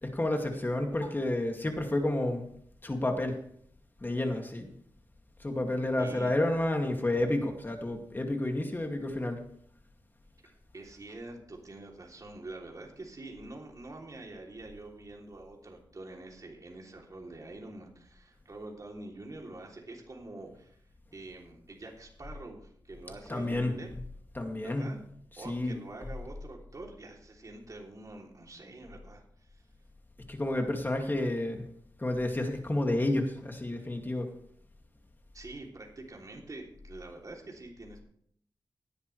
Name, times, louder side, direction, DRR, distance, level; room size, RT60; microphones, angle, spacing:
voice 1, 0.0-2.4 2.8-3.4 4.0-4.7 5.4-9.4 23.3-23.7 24.4-24.9 25.4-25.8 30.3-31.6 32.0-34.3, left 1 dB, 25° left, 3 dB, 2.3 m, -30 dB
voice 2, 6.0-6.3 10.7-20.8 21.1-23.9 24.6-25.0 25.4-29.6 35.3-38.0, right 2 dB, 45° right, 0 dB, 3.1 m, -46 dB
17.5 x 10.5 x 3.3 m, 0.65 s
wide cardioid pair, 85°, 8 cm